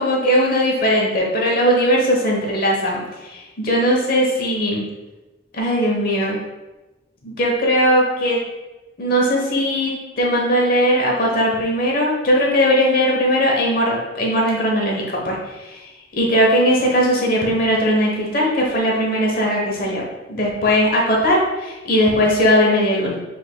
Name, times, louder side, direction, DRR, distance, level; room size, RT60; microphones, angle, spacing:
voice 1, 0.0-3.0 3.3-4.8 5.6-6.4 7.2-8.4 9.0-15.4 15.6-15.8 16.1-23.1, equal, 50° left, -2 dB, 1.0 m, -19 dB
6.8 x 3.4 x 2.2 m, 1.1 s
head